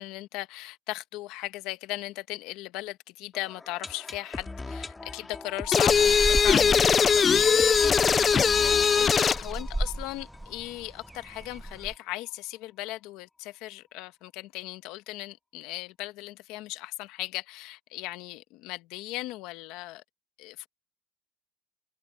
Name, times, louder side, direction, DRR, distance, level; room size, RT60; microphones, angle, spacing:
voice 1, 0.0-7.9 8.3-20.0 20.4-20.7, left 18 dB, 85° left, 1.2 m, -37 dB
sound 1, 3.3-11.1 11.4-11.5 11.7-11.8 12.3-12.4, left 3 dB, 15° left, 2.9 m, -40 dB
sound 2, 5.7-9.5, left 6 dB, 35° left, 0.3 m, -21 dB
sound 3, 5.9-11.9, right 1 dB, 5° right, 1.1 m, -35 dB
cardioid pair, 115°, 0 cm